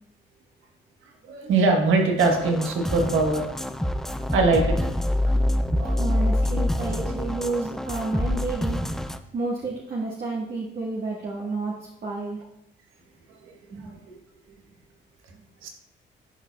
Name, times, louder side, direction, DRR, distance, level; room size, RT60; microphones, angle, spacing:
voice 1, 1.2-3.5 4.1-4.7 5.7-6.1 14.1-14.2 15.6-15.7, right 3 dB, 85° right, 2 dB, 1.2 m, -22 dB
sound 1, 2.2-9.2, left 1 dB, ahead, 0.3 m, -26 dB
voice 2, 5.9-8.8 9.3-12.4 13.7-13.9, right 3 dB, 50° right, -4 dB, 1.4 m, -30 dB
10.5 x 4.8 x 2.3 m, 0.81 s
cardioid pair, 90°, 20 cm